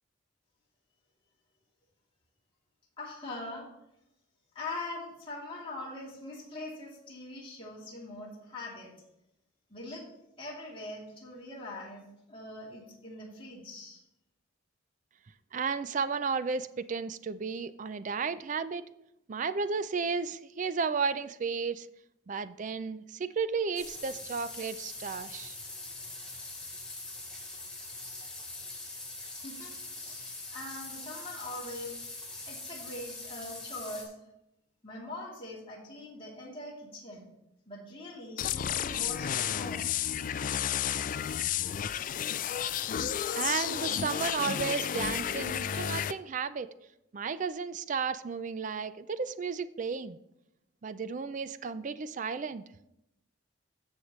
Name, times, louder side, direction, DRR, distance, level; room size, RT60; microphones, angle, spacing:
voice 1, 3.0-3.7 4.5-8.9 9.7-10.1 10.4-14.0 29.3-32.0 32.5-34.1 34.8-37.3 37.7-39.8, left 2 dB, 25° left, -5 dB, 3.0 m, -42 dB
voice 2, 15.5-18.9 19.3-21.9 22.3-25.6 43.3-46.7 47.1-50.2 50.8-52.6, right 5 dB, 40° right, 14 dB, 0.4 m, -33 dB
sound 1, 23.7-34.0, left 2 dB, 5° left, 2.8 m, -43 dB
sound 2, 38.4-46.1, left 9 dB, 45° left, 0.3 m, -32 dB
15.0 x 6.5 x 3.2 m, 0.85 s
head